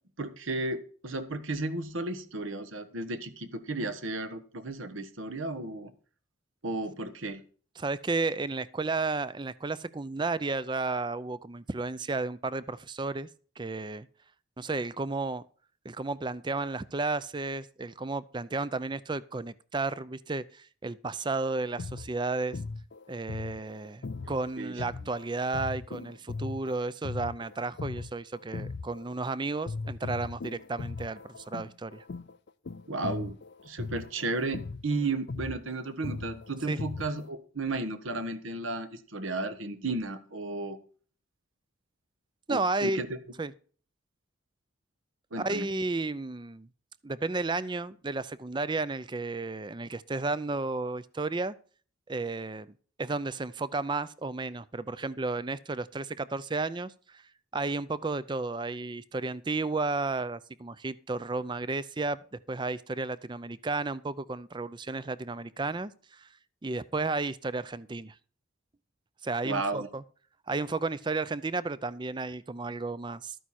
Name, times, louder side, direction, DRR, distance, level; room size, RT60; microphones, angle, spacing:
voice 1, 0.2-5.9 6.6-7.4 24.2-24.7 32.9-33.3 33.6-40.8 42.5-43.1 45.3-45.7 69.4-69.9, right 2 dB, 75° right, 1.3 m, -34 dB
voice 2, 7.8-13.3 13.6-14.1 14.6-15.4 15.8-22.6 23.1-32.0 36.7-36.8 42.5-43.0 43.4-43.5 45.4-46.7 47.0-51.5 52.1-52.7 53.0-57.2 57.5-62.2 62.5-66.3 66.6-68.2 69.2-70.0 70.5-73.4, right 3 dB, 20° right, 0.5 m, -33 dB
sound 1, 21.6-29.3 29.7-37.3, left 3 dB, 55° left, 0.5 m, -39 dB
13.0 x 9.3 x 4.3 m
head